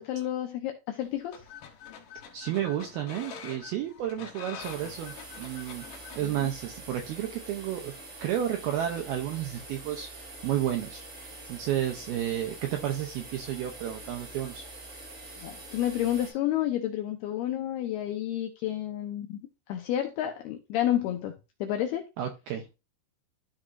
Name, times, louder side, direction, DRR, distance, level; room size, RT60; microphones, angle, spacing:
voice 1, 0.0-1.4 6.2-6.5 15.4-19.4 19.7-21.3 21.6-22.1, left 12 dB, 85° left, 2.3 m, -30 dB
sound 1, 1.0-6.2, left 7 dB, 70° left, 2.1 m, -46 dB
voice 2, 2.3-5.8 6.2-7.9 8.2-11.0 11.5-14.6 22.2-22.7, right 11 dB, 80° right, 2.2 m, -32 dB
sound 2, 4.6-16.3, right 2 dB, 65° right, 6.9 m, -45 dB
13.0 x 4.9 x 2.7 m
omnidirectional pair, 5.4 m